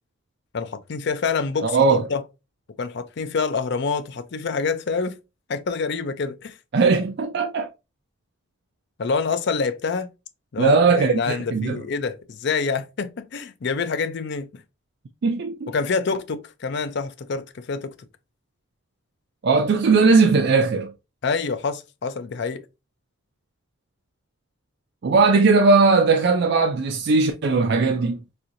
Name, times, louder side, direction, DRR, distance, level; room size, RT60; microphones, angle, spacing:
voice 1, 0.5-2.2 2.8-5.2 5.5-6.6 9.0-10.1 10.5-14.6 15.7-17.9 21.2-22.6, left 4 dB, 55° left, 0.5 m, -26 dB
voice 2, 1.6-2.0 6.7-7.7 10.6-11.8 15.2-15.7 19.4-20.9 25.0-28.2, right 4 dB, 55° right, 0.4 m, -18 dB
4.3 x 2.6 x 2.5 m
head